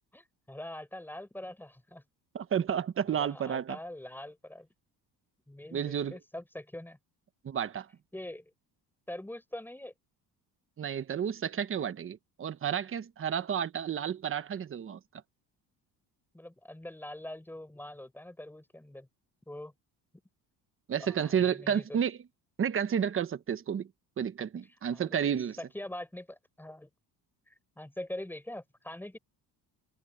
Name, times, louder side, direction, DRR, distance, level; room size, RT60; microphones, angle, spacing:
voice 1, 0.1-2.0 3.1-4.7 5.5-7.0 8.1-8.5 9.1-9.9 16.3-19.1 19.5-19.7 21.0-22.0 24.6-25.2 25.6-26.9 27.5-29.2, left 1 dB, 5° left, 5.3 m, -43 dB
voice 2, 2.3-3.8 5.7-6.2 7.4-7.9 10.8-15.0 20.9-22.2 22.6-23.9 24.2-25.6, right 8 dB, 35° right, 1.2 m, -31 dB
cardioid pair, 140°, 38 cm